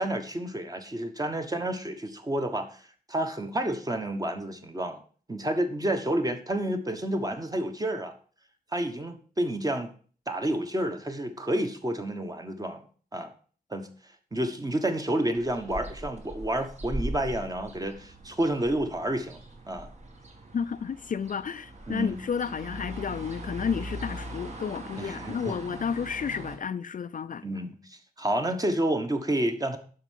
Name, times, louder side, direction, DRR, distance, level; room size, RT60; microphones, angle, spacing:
voice 1, 0.0-2.7 3.1-5.0 5.3-8.1 8.7-9.9 10.3-12.9 13.1-13.3 13.7-13.9 14.3-19.4 19.7-19.9 21.9-22.2 25.0-25.6 27.4-29.8, right 1 dB, 20° right, 1.3 m, -29 dB
sound 1, 15.3-26.6, right 1 dB, 45° right, 1.9 m, -40 dB
voice 2, 20.5-27.5, left 7 dB, 55° left, 0.4 m, -31 dB
12.0 x 4.7 x 7.6 m
wide cardioid pair, 165°, 16 cm